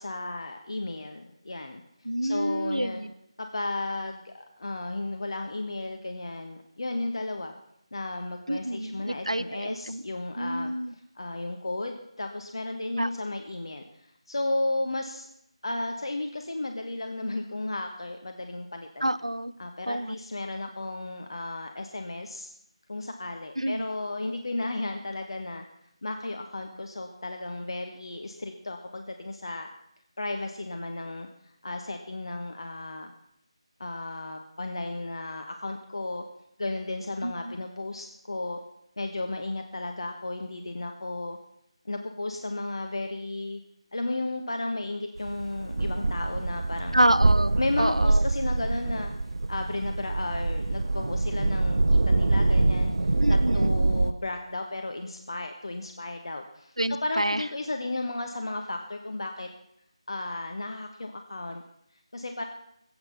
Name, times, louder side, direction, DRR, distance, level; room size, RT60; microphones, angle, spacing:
voice 1, 0.0-1.8 2.2-3.0 3.4-7.5 7.9-10.7 11.1-15.3 15.6-19.1 19.6-22.5 22.9-25.6 26.0-29.7 30.2-33.1 33.8-36.2 36.6-38.6 39.0-41.4 41.8-43.6 43.9-47.0 47.6-49.1 49.5-59.5 60.1-61.6 62.1-62.4, left 2 dB, 55° left, 4 dB, 1.3 m, -34 dB
voice 2, 2.0-3.1 8.5-10.0 10.4-10.9 13.0-13.1 19.0-19.5 19.9-20.1 23.6-23.9 37.2-37.5 46.9-48.2 53.2-53.7 56.8-57.4, right 1 dB, 80° right, 13 dB, 0.9 m, -28 dB
sound 1, 45.2-54.1, right 2 dB, 60° right, 0.5 m, -25 dB
21.5 x 8.7 x 5.8 m, 0.78 s
figure-of-eight pair, 160°, 3 cm